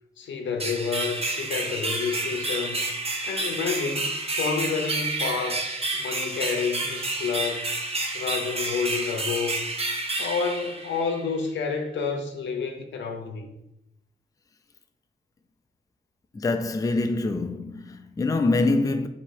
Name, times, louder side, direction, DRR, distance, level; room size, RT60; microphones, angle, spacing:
voice 1, 0.2-2.8 3.2-5.7 5.9-7.6 8.1-9.6 10.2-13.5, left 5 dB, 85° left, 0.6 m, -29 dB
sound 1, 0.6-11.3, right 2 dB, 35° right, 0.7 m, -30 dB
voice 2, 16.3-19.1, left 2 dB, 20° left, 0.3 m, -25 dB
3.0 x 2.8 x 4.4 m
cardioid pair, 65°, 19 cm